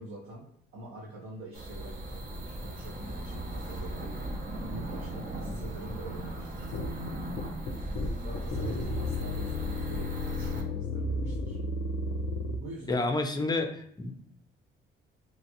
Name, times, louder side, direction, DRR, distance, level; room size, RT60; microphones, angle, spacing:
voice 1, 0.0-6.7 8.2-11.6 12.4-13.1, right 1 dB, 90° right, -5 dB, 0.9 m, -45 dB
binaural long, 1.5-10.6, right 1 dB, 45° right, 0.8 m, -37 dB
sound 1, 6.7-12.6, left 2 dB, 75° left, 0.4 m, -33 dB
voice 2, 12.9-14.2, left 2 dB, 20° left, 5 dB, 0.5 m, -29 dB
3.2 x 2.4 x 2.9 m, 0.69 s
cardioid pair, 90°, 20 cm